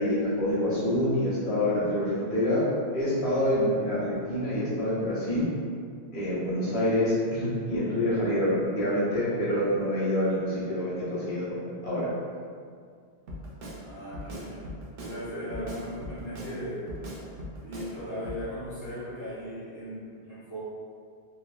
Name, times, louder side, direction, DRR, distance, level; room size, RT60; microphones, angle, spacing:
voice 1, 0.0-2.7 2.9-5.5 6.1-12.1, left 1 dB, 65° left, -10 dB, 1.1 m, -27 dB
Drum kit, 13.3-13.8 14.1-15.2 15.5-16.5 16.9-17.9 18.2-18.4, equal, 55° right, 0.6 m, -39 dB
voice 2, 13.8-14.7 14.9-16.9 17.6-20.6, equal, 20° left, -15 dB, 1.1 m, -37 dB
3.2 x 2.0 x 2.4 m, 2.1 s
omnidirectional pair, 1.1 m